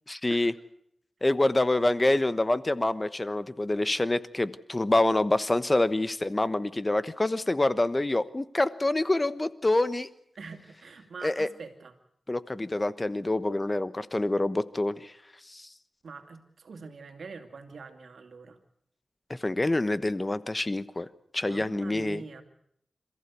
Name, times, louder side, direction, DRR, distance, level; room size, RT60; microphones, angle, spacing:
voice 1, 0.1-0.5 1.2-10.1 11.2-11.5 12.3-15.1 15.5-15.7 19.3-21.1 21.3-22.2, left 2 dB, 30° left, 14 dB, 1.1 m, -26 dB
voice 2, 10.4-11.9 16.0-18.6 21.4-22.4, right 4 dB, 85° right, 6 dB, 2.5 m, -44 dB
27.5 x 15.0 x 8.4 m, 0.71 s
cardioid pair, 60°, 0 cm